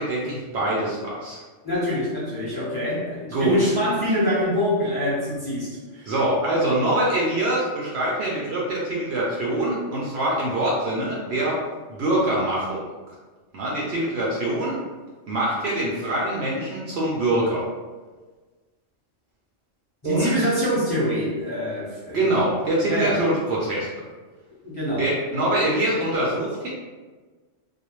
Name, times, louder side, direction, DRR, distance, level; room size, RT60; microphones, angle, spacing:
voice 1, 0.0-1.4 3.3-3.7 6.1-11.6 11.9-12.8 13.5-14.8 15.3-17.7 20.0-20.5 22.1-23.9 25.0-26.7, right 1 dB, 65° right, -5 dB, 0.8 m, -24 dB
voice 2, 1.6-6.1 20.0-22.2 22.8-23.2 24.6-25.1, equal, 20° left, -10 dB, 0.9 m, -25 dB
2.4 x 2.0 x 3.0 m, 1.3 s
omnidirectional pair, 1.3 m